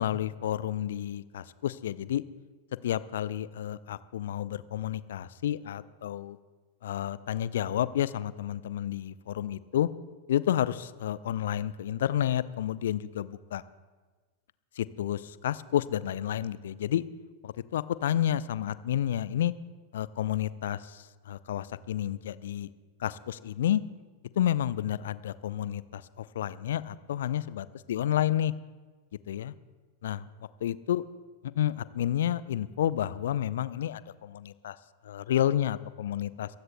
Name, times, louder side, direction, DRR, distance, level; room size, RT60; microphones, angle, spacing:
voice 1, 0.0-2.2 2.8-6.4 6.8-9.9 10.3-13.6 14.8-17.0 17.4-19.5 19.9-22.7 23.0-23.8 24.4-28.5 29.3-29.5 30.0-30.3 30.6-31.0 31.4-34.8 35.0-36.5, left 11 dB, 60° left, 17 dB, 0.4 m, -30 dB
26.5 x 15.5 x 2.3 m, 1.4 s
figure-of-eight pair, 90°, 0 cm